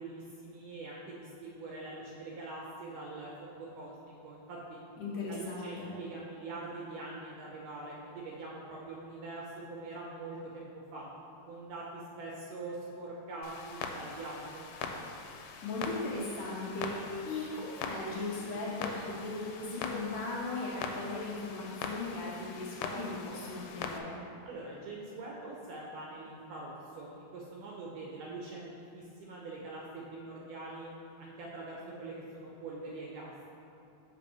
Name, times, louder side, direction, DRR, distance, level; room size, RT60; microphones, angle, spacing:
voice 1, 0.0-4.8 5.3-11.1 11.5-14.7 24.4-30.9 31.2-33.4, right 2 dB, 75° right, -3 dB, 2.0 m, -44 dB
voice 2, 5.0-5.9 15.6-24.2, left 3 dB, 70° left, -4 dB, 2.2 m, -38 dB
Clock, 13.4-24.0, left 5 dB, 90° left, 2.6 m, -42 dB
5.7 x 5.4 x 6.8 m, 2.8 s
omnidirectional pair, 4.5 m